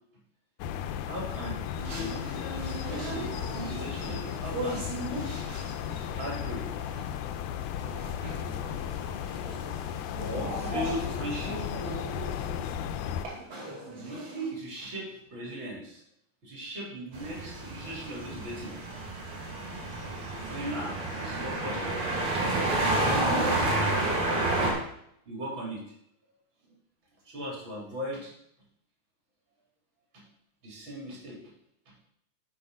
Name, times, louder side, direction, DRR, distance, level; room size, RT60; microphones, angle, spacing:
sound 1, 0.6-13.3, left 9 dB, 90° left, 2.1 m, -35 dB
voice 1, 1.1-1.6 1.9-2.2 2.5-4.9 6.2-6.6 8.6-8.7 10.2-11.6 13.2-13.4 14.0-14.2 14.5-16.0 16.4-18.7 20.3-21.8 23.2-24.5 25.2-25.8 27.3-28.3 30.1-30.2 30.6-31.4, equal, 40° right, -3 dB, 2.9 m, -38 dB
sound 2, 1.7-14.5, right 2 dB, 60° right, 3.9 m, -39 dB
sound 3, 17.1-24.7, right 2 dB, 80° right, 3.7 m, -29 dB
8.3 x 4.8 x 5.1 m, 0.73 s
omnidirectional pair, 3.5 m